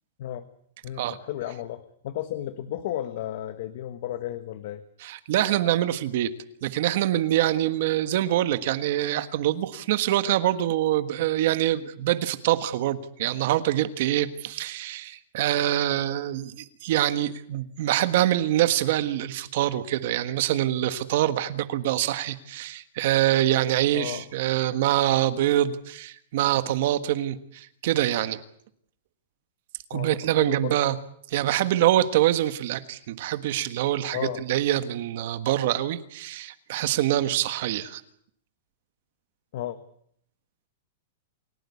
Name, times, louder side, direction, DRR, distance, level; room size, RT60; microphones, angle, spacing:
voice 1, 0.8-4.8 23.9-24.3 29.9-30.8 34.1-34.4 39.5-39.8, left 12 dB, 45° left, 11 dB, 1.4 m, -33 dB
voice 2, 5.0-6.3 6.6-28.4 29.9-30.9 31.3-38.0, right 13 dB, 45° right, 11 dB, 1.5 m, -25 dB
29.0 x 17.0 x 8.4 m, 0.67 s
supercardioid pair, 175°, 0 cm